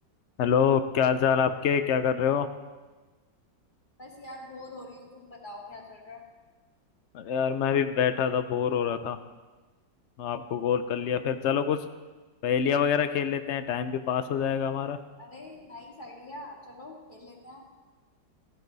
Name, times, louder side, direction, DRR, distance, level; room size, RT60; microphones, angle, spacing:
voice 1, 0.4-2.5 7.1-9.2 10.2-11.9 12.4-15.0, left 7 dB, 85° left, 10 dB, 0.6 m, -26 dB
voice 2, 4.0-6.2 15.2-17.6, left 1 dB, 25° left, -1 dB, 2.3 m, -44 dB
15.5 x 15.0 x 4.0 m, 1.3 s
omnidirectional pair, 2.0 m